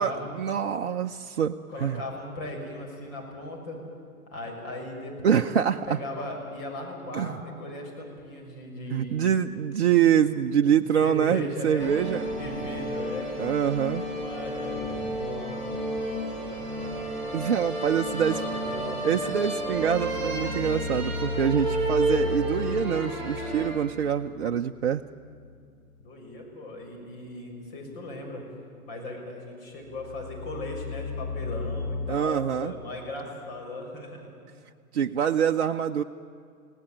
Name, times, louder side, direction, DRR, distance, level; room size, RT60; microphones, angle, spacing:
voice 1, 0.0-1.6 1.8-2.0 5.2-6.0 7.1-7.4 8.9-12.3 13.4-14.0 17.3-18.4 19.0-25.0 32.1-32.7 34.9-36.0, right 8 dB, 50° right, 5 dB, 0.7 m, -25 dB
voice 2, 1.7-3.8 4.3-5.5 5.8-9.2 10.6-13.3 14.2-15.6 16.1-17.0 17.9-19.6 26.0-28.4 28.8-34.3, left 1 dB, 40° left, 1 dB, 6.5 m, -38 dB
sound 1, 11.8-23.7, right 1 dB, ahead, 6.6 m, -31 dB
sound 2, 19.5-25.5 25.8-25.9 29.9-32.1, left 4 dB, 20° left, 3.9 m, -35 dB
28.0 x 17.5 x 9.1 m, 2.3 s
figure-of-eight pair, 115°, 43 cm